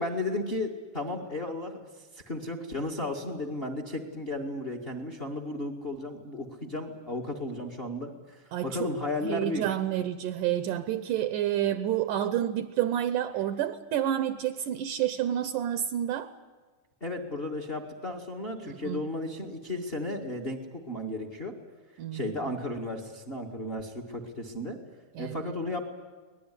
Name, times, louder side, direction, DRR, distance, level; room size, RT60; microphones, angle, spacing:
voice 1, 0.0-9.7 17.0-21.5 22.1-24.8 25.2-25.9, left 2 dB, 35° left, 4 dB, 0.9 m, -34 dB
voice 2, 9.2-16.3 18.6-19.0 22.0-22.2 25.2-25.4, right 11 dB, 75° right, 11 dB, 2.0 m, -29 dB
24.0 x 19.0 x 9.8 m, 1.4 s
omnidirectional pair, 4.5 m